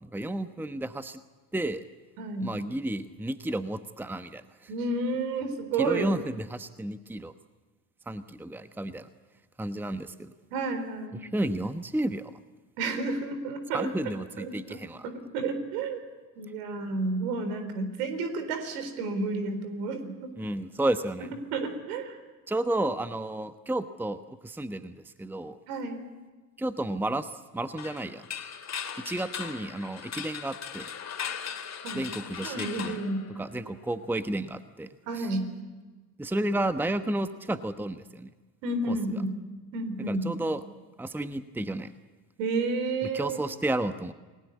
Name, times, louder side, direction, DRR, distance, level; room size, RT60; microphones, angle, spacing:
voice 1, 0.0-1.2 1.5-1.8 2.4-4.7 5.8-7.3 8.1-9.1 9.6-10.3 11.2-12.3 13.7-15.1 20.4-21.3 22.5-25.6 26.6-28.2 29.0-30.9 31.9-33.0 33.4-34.9 35.2-35.3 36.2-38.3 38.9-39.0 40.1-40.6 41.0-41.9 43.1-44.1, right 1 dB, 5° right, 11 dB, 1.2 m, -32 dB
voice 2, 2.2-2.5 4.7-6.1 10.5-11.2 12.8-13.9 14.4-14.8 15.0-16.0 16.4-20.3 21.5-22.2 25.7-26.0 31.8-32.0 32.4-33.3 35.1-35.5 38.6-39.3 39.7-40.3 42.4-43.4, right 3 dB, 65° right, 9 dB, 4.3 m, -31 dB
sound 1, 27.8-33.8, left 7 dB, 30° left, 2.9 m, -38 dB
29.0 x 20.5 x 8.4 m, 1.3 s
figure-of-eight pair, 65°, 49 cm